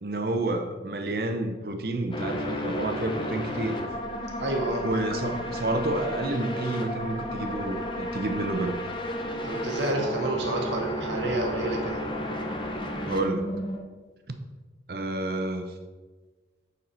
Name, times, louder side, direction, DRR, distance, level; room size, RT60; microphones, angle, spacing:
voice 1, 0.0-3.8 4.8-8.7 13.1-13.5 14.9-15.7, right 2 dB, 55° right, 7 dB, 0.7 m, -29 dB
sound 1, 2.1-13.8, equal, 25° left, 0.7 m, -33 dB
voice 2, 4.4-4.8 9.4-12.0, right 2 dB, 85° right, 0 dB, 1.1 m, -29 dB
9.2 x 4.1 x 4.4 m, 1.3 s
head